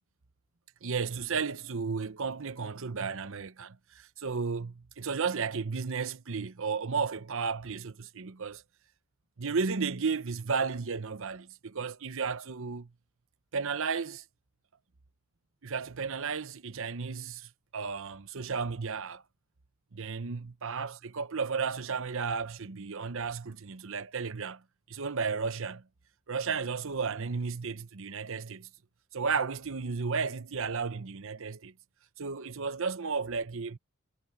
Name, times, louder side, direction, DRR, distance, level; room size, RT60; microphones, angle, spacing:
voice 1, 0.8-8.6 9.4-12.9 13.5-14.2 15.6-19.2 19.9-24.6 24.9-25.8 26.3-28.7 29.1-31.7 32.2-33.8, right 5 dB, 65° right, 0.9 m, -33 dB
head